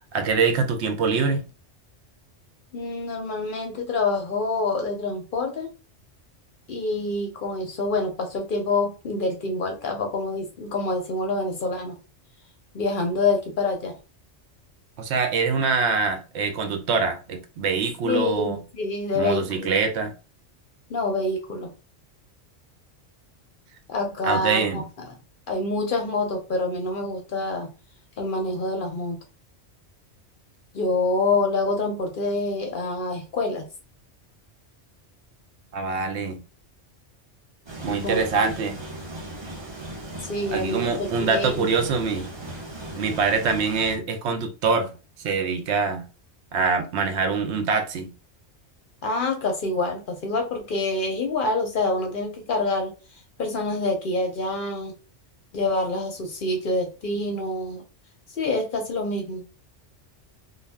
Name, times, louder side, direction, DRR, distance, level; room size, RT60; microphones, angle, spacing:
voice 1, 0.1-1.4 15.0-18.6 19.1-20.1 24.2-24.8 35.7-36.4 37.8-38.8 40.5-42.3 43.0-44.9 45.2-46.1 46.5-48.1, right 4 dB, 70° right, 0.8 m, -24 dB
voice 2, 2.7-5.7 6.7-11.9 12.7-13.9 18.0-19.7 20.9-21.7 23.9-25.1 25.5-27.7 28.2-29.2 30.7-33.7 37.9-38.2 40.2-40.9 41.2-41.8 49.0-52.9 53.4-54.9 55.5-57.8 58.4-59.4, left 2 dB, 55° left, 0.7 m, -26 dB
sound 1, 37.7-44.0, right 1 dB, 30° right, 0.7 m, -37 dB
2.5 x 2.0 x 3.3 m
omnidirectional pair, 1.2 m